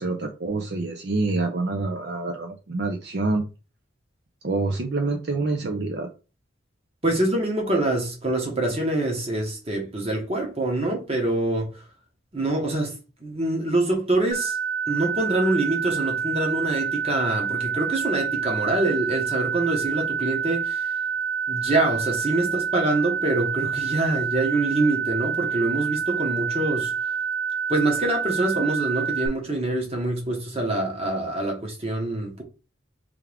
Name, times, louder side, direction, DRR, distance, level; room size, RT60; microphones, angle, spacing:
voice 1, 0.0-3.4 4.4-6.1, right 3 dB, 60° right, 0.5 m, -26 dB
voice 2, 7.0-11.8 12.3-14.6 14.9-20.9 21.5-27.2 27.7-32.4, right 2 dB, 30° right, 1.2 m, -25 dB
sound 1, 14.3-29.3, right 7 dB, 25° left, 0.7 m, -27 dB
3.5 x 3.4 x 3.4 m
head